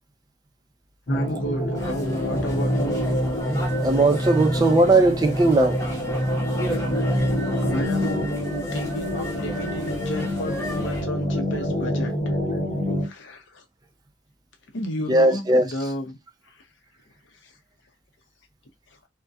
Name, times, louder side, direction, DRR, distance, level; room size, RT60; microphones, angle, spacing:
voice 1, 1.1-3.1 7.6-12.1 13.0-13.6 14.7-16.2, equal, 80° left, 0.6 m, -32 dB
sound 1, 1.1-13.1, equal, 35° left, 1.1 m, -26 dB
sound 2, 1.8-11.0, equal, 15° left, 0.8 m, -35 dB
voice 2, 3.8-5.8 15.1-15.7, right 2 dB, 20° right, 0.4 m, -18 dB
2.3 x 2.1 x 2.5 m
head